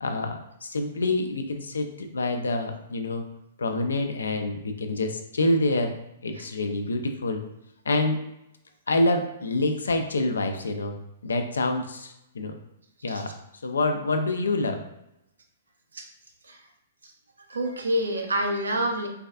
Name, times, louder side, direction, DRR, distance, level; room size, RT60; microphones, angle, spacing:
voice 1, 0.0-3.2 3.6-5.9 6.2-7.4 7.9-8.3 8.9-11.0 11.2-12.6 13.0-13.4 13.6-14.9, left 2 dB, 75° left, 5 dB, 0.3 m, -27 dB
voice 2, 17.4-19.1, equal, 80° right, 3 dB, 0.5 m, -28 dB
3.3 x 2.3 x 2.3 m, 0.84 s
figure-of-eight pair, 115°, 0 cm